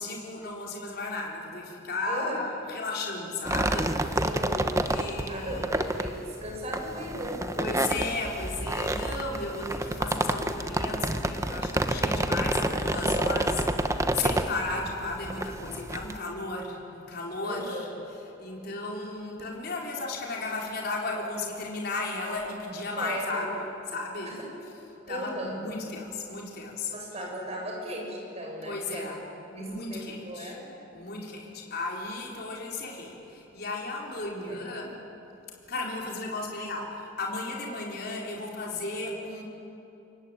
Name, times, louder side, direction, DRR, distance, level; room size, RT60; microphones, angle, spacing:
voice 1, 0.0-4.2 4.9-5.7 7.5-17.9 18.4-24.3 25.1-26.9 28.6-29.2 29.5-30.6 30.9-35.0 35.7-39.4, left 3 dB, 55° left, -1 dB, 4.4 m, -34 dB
voice 2, 2.1-2.4 4.2-4.7 5.3-8.2 17.4-17.9 23.0-23.5 24.2-24.3 25.1-25.6 26.9-29.1 29.5-30.7 34.5-34.6, equal, 30° right, -1 dB, 7.0 m, -37 dB
sound 1, 3.4-16.2, right 1 dB, 15° right, 1.1 m, -29 dB
28.0 x 22.5 x 9.0 m, 3.0 s
head